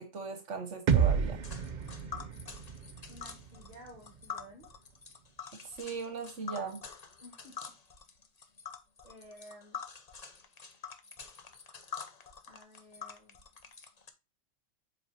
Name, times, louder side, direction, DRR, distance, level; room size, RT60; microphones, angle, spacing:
voice 1, 0.0-1.4 5.6-6.8, right 4 dB, 70° right, 7 dB, 1.3 m, -38 dB
sound 1, 0.9-4.8, right 7 dB, 50° right, 0.6 m, -32 dB
Tick, 1.4-14.1, left 6 dB, 35° left, 0.9 m, -46 dB
voice 2, 3.1-4.7 7.2-7.7 9.0-9.8 12.4-13.4, equal, 30° right, -1 dB, 1.8 m, -53 dB
7.7 x 5.2 x 2.7 m, 0.28 s
omnidirectional pair, 1.3 m